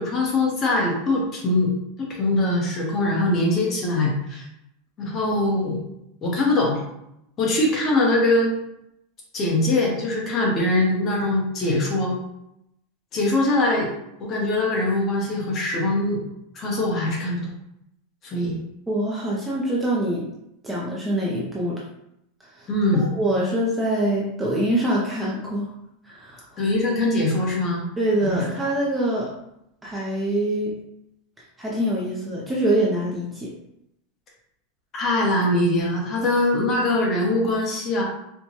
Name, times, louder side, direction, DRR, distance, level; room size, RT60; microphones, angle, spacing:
voice 1, 0.0-1.7 2.0-4.4 5.0-5.9 6.2-6.8 7.4-8.5 9.3-12.2 13.1-13.9 14.2-16.2 16.5-17.4 18.2-18.6 22.7-23.0 26.6-27.8 28.2-28.5 34.9-38.0, left 2 dB, 25° left, -2 dB, 0.9 m, -22 dB
voice 2, 18.9-20.3 20.6-21.8 22.4-22.7 23.1-25.7 26.0-26.4 28.0-29.3 29.8-30.8 31.6-33.5, right 1 dB, 10° right, -5 dB, 0.5 m, -24 dB
4.4 x 2.2 x 2.8 m, 0.80 s
supercardioid pair, 160°, 0 cm